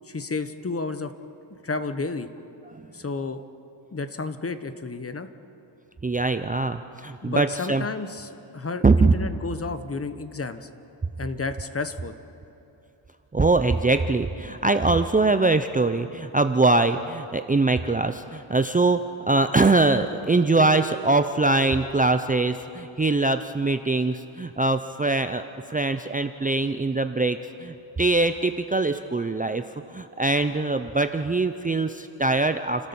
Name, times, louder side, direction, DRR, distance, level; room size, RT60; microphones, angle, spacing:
voice 1, 0.1-1.1 1.6-2.3 2.9-3.4 3.9-5.3 7.2-10.7 11.2-12.1, left 3 dB, 30° left, 11 dB, 1.1 m, -31 dB
voice 2, 6.0-7.8 8.8-9.1 13.3-29.6 29.9-32.9, right 3 dB, 15° right, 8 dB, 0.6 m, -22 dB
30.0 x 13.0 x 7.1 m, 2.9 s
cardioid pair, 90°, 50 cm